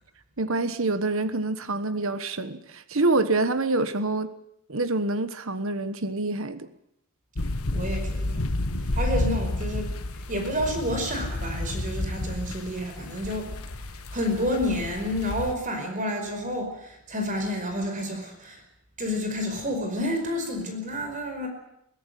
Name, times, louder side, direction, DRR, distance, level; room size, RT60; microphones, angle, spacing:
voice 1, 0.4-4.3 4.7-6.7, right 2 dB, 65° right, 11 dB, 1.3 m, -26 dB
sound 1, 7.3-15.5, left 1 dB, 80° left, 1.5 m, -31 dB
voice 2, 7.7-8.4 8.9-9.9 10.3-13.5 14.1-18.6 19.0-21.5, left 1 dB, 35° right, 4 dB, 5.1 m, -29 dB
23.0 x 16.5 x 9.1 m, 0.79 s
head